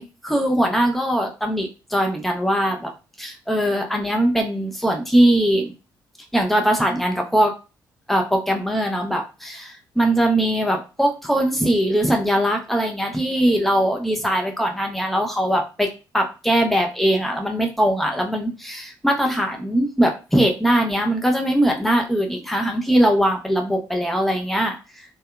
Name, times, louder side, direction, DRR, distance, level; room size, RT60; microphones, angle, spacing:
voice 1, 0.0-2.9 3.2-5.7 6.3-7.5 8.1-15.9 16.1-24.8, right 1 dB, ahead, 2 dB, 0.6 m, -21 dB
2.7 x 2.1 x 2.3 m, 0.30 s
figure-of-eight pair, 45°, 10 cm